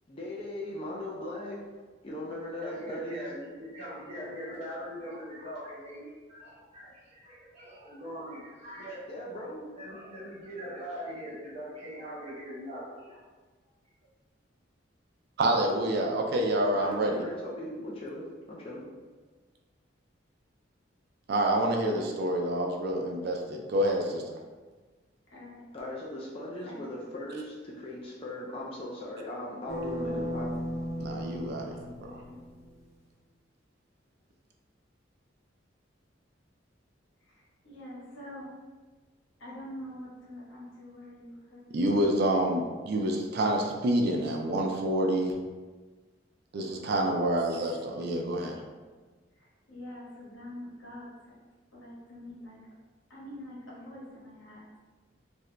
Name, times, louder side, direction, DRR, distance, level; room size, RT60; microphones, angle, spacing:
voice 1, 0.1-3.4 9.1-9.8 16.8-18.9 25.7-30.5, left 1 dB, 30° left, -5 dB, 0.4 m, -39 dB
voice 2, 2.6-9.0 9.8-13.2, equal, 35° right, -9 dB, 1.3 m, -41 dB
voice 3, 15.4-17.2 21.3-24.4 31.0-32.2 41.7-45.4 46.5-48.6, right 1 dB, 55° right, 2 dB, 0.4 m, -28 dB
voice 4, 25.3-25.6 26.6-27.4 32.3-32.4 37.3-38.5 39.4-42.4 47.4-47.8 49.4-51.4 51.7-52.6 53.1-54.7, left 1 dB, 80° left, -5 dB, 1.0 m, -46 dB
sound 1, 29.7-32.7, equal, 15° right, 0.8 m, -35 dB
2.8 x 2.6 x 3.2 m, 1.3 s
head